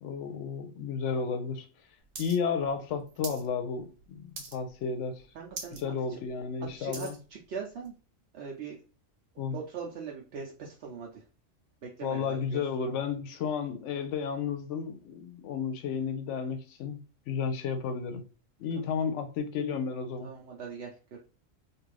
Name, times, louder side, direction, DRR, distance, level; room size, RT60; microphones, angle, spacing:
voice 1, 0.0-1.7 2.2-4.2 4.5-5.2 5.8-7.2 9.4-9.6 12.0-17.0 17.3-18.2 18.6-20.3, left 6 dB, 75° left, 0.9 m, -32 dB
sound 1, 2.2-2.4 2.6-3.5 3.8-4.0 4.4-4.8 5.2-5.3 5.5-5.8 6.3-7.2 7.9-8.0, right 4 dB, 80° right, 1.1 m, -41 dB
voice 2, 5.3-5.8 6.1-6.2 6.8-7.9 8.3-8.8 9.5-11.2 11.8-12.6 18.8-19.1 20.2-21.2, right 5 dB, 65° right, 0.8 m, -41 dB
2.5 x 2.5 x 3.2 m
omnidirectional pair, 1.3 m